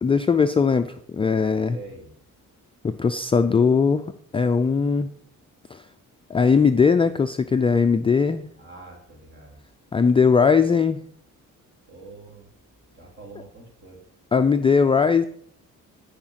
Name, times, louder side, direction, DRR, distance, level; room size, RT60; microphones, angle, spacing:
voice 1, 0.0-1.8 2.8-5.1 5.7-5.8 6.3-8.5 9.9-11.0 14.3-15.3, left 5 dB, 15° left, 8 dB, 0.3 m, -19 dB
voice 2, 1.5-2.1 8.6-9.6 11.9-12.5 12.9-14.0, right 3 dB, 35° right, 0 dB, 3.6 m, -44 dB
14.0 x 5.1 x 5.7 m, 0.63 s
cardioid pair, 145°, 33 cm